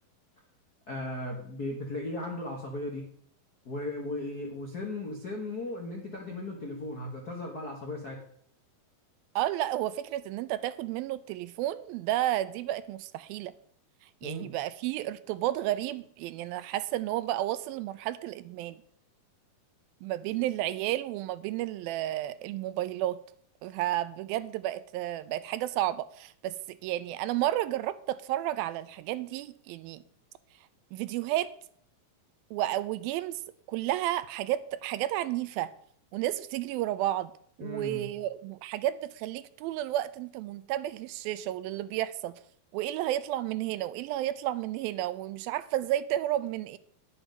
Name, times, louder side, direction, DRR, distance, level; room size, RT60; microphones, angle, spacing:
voice 1, 0.9-3.1 3.6-8.2 14.2-14.5 37.6-38.1, left 2 dB, 65° left, 0.9 m, -36 dB
voice 2, 9.4-13.5 14.2-18.8 20.0-23.2 23.6-30.0 30.9-31.5 32.5-33.4 33.7-35.7 36.1-37.3 37.6-42.3 42.7-46.8, right 14 dB, 85° right, 2.3 m, -32 dB
11.0 x 7.0 x 5.3 m
omnidirectional pair, 4.3 m